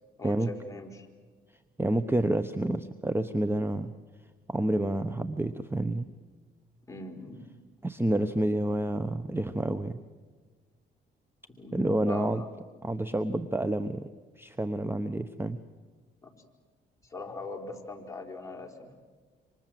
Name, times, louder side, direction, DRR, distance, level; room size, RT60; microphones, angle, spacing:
voice 1, 0.2-1.1 6.9-7.5 11.6-12.5 16.2-16.3 17.0-19.0, left 3 dB, 15° left, 1 dB, 4.4 m, -41 dB
voice 2, 1.8-3.9 4.5-6.1 7.8-10.0 11.7-12.4 12.8-14.1 14.4-15.6, right 1 dB, 10° right, 12 dB, 0.9 m, -29 dB
27.5 x 25.5 x 7.7 m, 1.4 s
cardioid pair, 90°, 20 cm